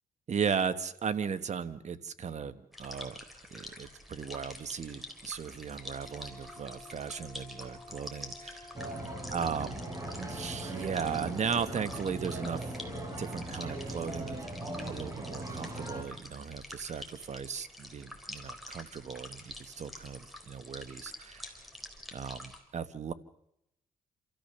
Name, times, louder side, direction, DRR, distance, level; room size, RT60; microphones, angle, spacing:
voice 1, 0.3-3.2 3.5-8.7 9.3-9.8 10.2-12.7 13.2-14.4 14.7-21.5 22.1-23.1, right 6 dB, 50° right, 13 dB, 1.3 m, -36 dB
sound 1, 2.7-22.6, left 1 dB, ahead, 3.8 m, -48 dB
Brass instrument, 5.8-13.5, left 3 dB, 35° left, 3.9 m, -53 dB
sound 2, 8.7-16.0, right 1 dB, 25° right, 4.4 m, -39 dB
27.5 x 14.0 x 6.8 m, 0.79 s
cardioid pair, 90°, 15 cm